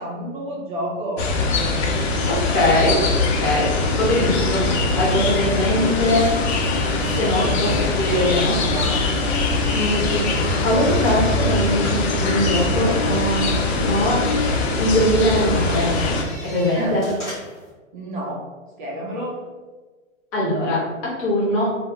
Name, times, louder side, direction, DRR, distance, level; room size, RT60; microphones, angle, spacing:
voice 1, 0.0-1.3 6.7-9.0 16.7-17.0 17.9-18.5 18.8-19.4, right 1 dB, 40° right, -3 dB, 0.5 m, -31 dB
sound 1, 1.2-16.2, left 3 dB, 55° left, 0.6 m, -22 dB
voice 2, 2.2-3.0 3.3-3.7 4.0-6.3 6.9-8.6 9.7-15.9 16.4-17.1 20.3-21.7, equal, 30° left, -6 dB, 0.9 m, -22 dB
sound 2, 5.8-17.7, equal, 10° left, 0.5 m, -41 dB
2.2 x 2.1 x 3.4 m, 1.3 s
hypercardioid pair, 145°, 39 cm